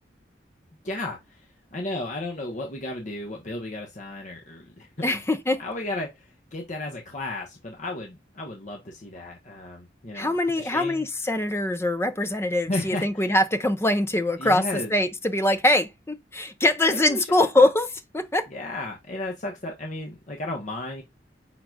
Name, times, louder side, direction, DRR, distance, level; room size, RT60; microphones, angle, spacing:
voice 1, 0.8-5.2 5.6-11.1 12.7-13.3 14.4-14.9 16.9-17.5 18.5-21.0, left 2 dB, 45° left, 1.0 m, -34 dB
voice 2, 5.0-5.6 10.1-14.6 14.9-17.9 18.1-18.5, left 1 dB, 15° left, 0.6 m, -23 dB
6.0 x 3.8 x 2.3 m
head